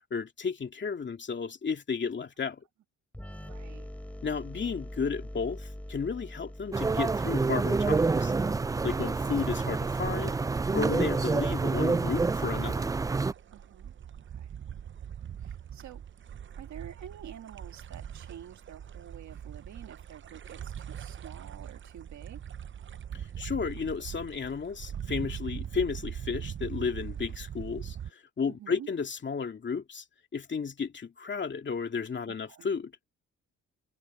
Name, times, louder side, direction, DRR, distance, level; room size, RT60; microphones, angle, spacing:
voice 1, 0.1-2.6 4.2-8.3 8.8-10.4 10.7-12.9 23.1-30.0 30.3-32.9, left 5 dB, 40° left, 2.5 m, -33 dB
sound 1, 3.1-10.7, left 1 dB, 5° left, 3.2 m, -45 dB
voice 2, 3.3-3.9 13.5-13.9 14.3-14.5 15.4-16.0 16.6-22.4 28.5-28.9 32.3-32.7, right 10 dB, 70° right, 2.7 m, -48 dB
sound 2, 6.7-13.3, right 4 dB, 10° right, 0.3 m, -28 dB
sound 3, 11.8-28.1, right 9 dB, 40° right, 0.7 m, -41 dB
cardioid pair, 90°, 30 cm